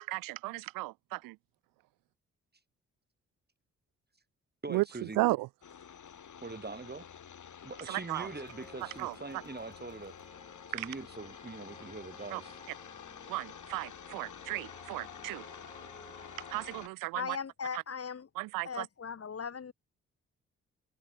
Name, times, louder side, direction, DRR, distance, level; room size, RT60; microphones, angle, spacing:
voice 1, 0.1-1.4 4.7-5.5 7.9-8.3 8.8-9.1 10.7-10.9 12.3-12.4 13.3-15.4 16.5-17.4 17.7-17.8 18.4-18.9, right 21 dB, 80° right, 0.6 m, -34 dB
voice 2, 4.6-5.2 6.4-7.0 7.6-10.1 10.7-12.6, right 3 dB, 30° right, 5.9 m, -43 dB
sound 1, 5.6-16.9, left 8 dB, 60° left, 6.9 m, -50 dB
sound 2, 8.0-16.9, left 2 dB, 15° left, 4.7 m, -56 dB
Gunshot gunfire, 8.4-11.5, right 7 dB, 60° right, 7.7 m, -68 dB
voice 3, 17.1-18.3 18.6-19.7, left 6 dB, 45° left, 1.7 m, -38 dB
hypercardioid pair, 40°, 33 cm